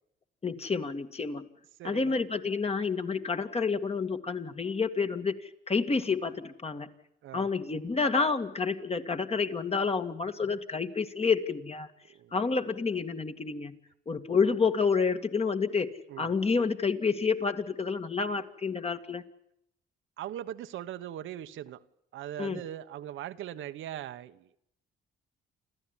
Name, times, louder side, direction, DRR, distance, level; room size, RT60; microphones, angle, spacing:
voice 1, 0.4-1.5 1.8-6.9 7.3-11.9 12.3-13.8 14.1-19.2 22.4-22.6, left 5 dB, 30° left, 2.2 m, -29 dB
voice 2, 1.8-2.2 7.2-7.5 12.2-12.3 16.1-16.3 20.2-21.8 22.1-24.5, right 11 dB, 80° right, 1.2 m, -40 dB
28.0 x 14.0 x 9.9 m
cardioid pair, 90°, 20 cm